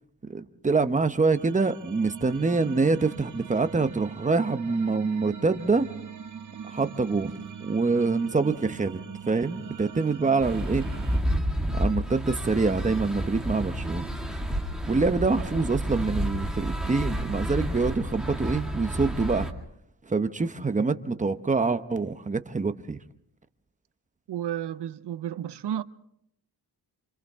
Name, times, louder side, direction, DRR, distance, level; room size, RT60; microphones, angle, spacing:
voice 1, 0.3-5.9 6.6-7.3 7.6-9.0 9.2-10.8 11.7-14.1 14.9-19.5 20.0-23.0, right 4 dB, 20° right, 0.8 m, -25 dB
sound 1, 1.3-11.2, right 7 dB, 45° right, 1.1 m, -41 dB
sound 2, 10.4-19.5, equal, ahead, 2.1 m, -30 dB
voice 2, 24.3-25.8, right 10 dB, 80° right, 0.8 m, -32 dB
28.5 x 26.5 x 3.6 m
wide cardioid pair, 140°, 40 cm